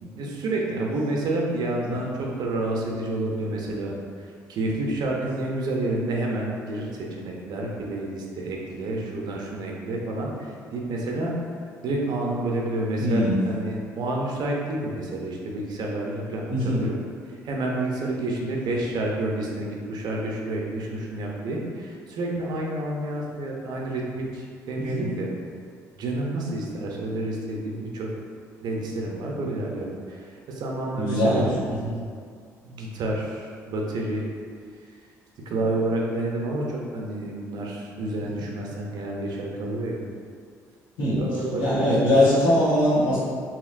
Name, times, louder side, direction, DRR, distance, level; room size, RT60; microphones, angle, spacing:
voice 1, 0.0-11.4 11.8-17.0 17.3-25.3 26.0-28.1 28.6-31.5 32.6-34.3 35.5-40.0 41.2-42.1, right 2 dB, 65° right, -1 dB, 0.6 m, -29 dB
voice 2, 13.0-13.4 16.5-16.9 24.8-25.1 30.9-32.0 41.0-41.2 41.6-43.2, left 1 dB, 70° left, -9 dB, 1.1 m, -22 dB
2.9 x 2.8 x 2.4 m, 2.1 s
hypercardioid pair, 55°, 8 cm